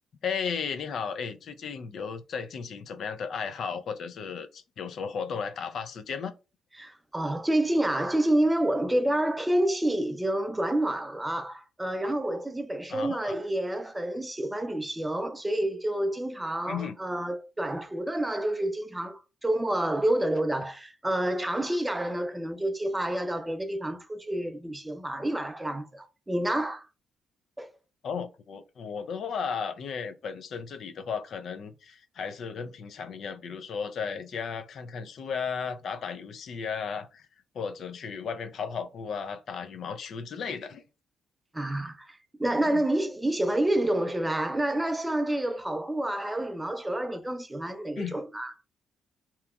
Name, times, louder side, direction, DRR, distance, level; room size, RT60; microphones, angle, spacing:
voice 1, 0.2-6.3 12.9-13.3 16.7-16.9 28.0-37.3 37.5-40.8 42.6-42.8 48.0-48.2, left 6 dB, 60° left, 0.4 m, -35 dB
voice 2, 6.8-26.9 27.6-27.7 41.5-48.5, right 1 dB, 10° right, 0.4 m, -28 dB
2.9 x 2.1 x 2.3 m
cardioid pair, 90°, 0 cm